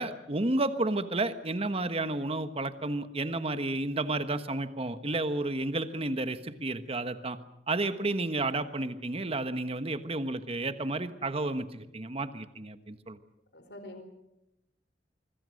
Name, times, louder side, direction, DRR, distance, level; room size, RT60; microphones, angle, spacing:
voice 1, 0.0-7.4 7.7-13.2, right 2 dB, 35° right, 10 dB, 1.3 m, -31 dB
voice 2, 13.5-14.0, left 1 dB, 75° left, 8 dB, 4.4 m, -45 dB
25.5 x 24.0 x 6.5 m, 0.85 s
head